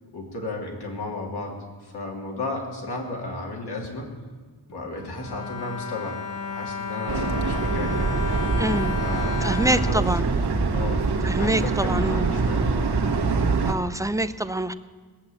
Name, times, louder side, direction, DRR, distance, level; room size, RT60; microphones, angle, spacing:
voice 1, 0.1-1.5 1.8-4.1 4.7-6.2 6.4-8.1 9.0-9.6 9.9-10.1 10.7-11.1 11.4-13.1, left 2 dB, 80° left, 0 dB, 3.0 m, -33 dB
Bowed string instrument, 4.7-10.9 11.6-11.7 12.0-12.2, left 5 dB, 50° left, 1.7 m, -34 dB
sound 1, 7.1-13.7, right 4 dB, 85° right, 1.4 m, -24 dB
voice 2, 8.6-9.0 9.4-10.2 11.2-12.3 13.7-14.7, right 1 dB, 10° right, 12 dB, 0.5 m, -25 dB
18.5 x 7.5 x 8.7 m, 1.5 s
wide cardioid pair, 130°, 39 cm